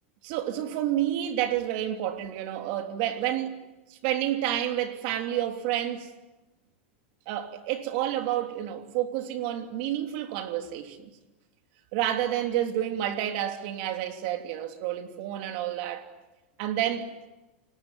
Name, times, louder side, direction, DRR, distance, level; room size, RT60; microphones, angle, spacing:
voice 1, 0.2-3.6 3.9-6.1 7.3-11.1 11.9-16.0 16.6-17.1, right 12 dB, 55° right, 3.1 m, -29 dB
29.5 x 19.0 x 9.2 m
supercardioid pair, 130°, 6 cm